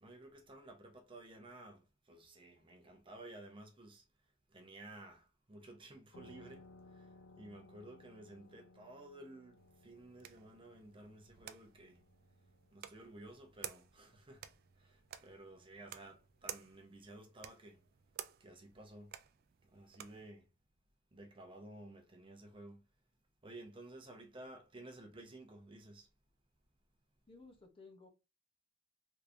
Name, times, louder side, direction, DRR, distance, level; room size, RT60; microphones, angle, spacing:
voice 1, 0.0-4.0 4.5-6.7 6.9-12.0 12.7-14.5 14.7-17.8 18.4-19.1 19.6-20.5 21.1-22.8 23.4-26.1, right 1 dB, 25° right, 0.7 m, -54 dB
sound 1, 6.1-15.3, left 2 dB, 80° left, 0.6 m, -62 dB
sound 2, 9.6-20.3, right 10 dB, 50° right, 0.3 m, -53 dB
voice 2, 27.3-28.1, left 3 dB, 30° left, 0.7 m, -57 dB
3.5 x 3.1 x 2.5 m
head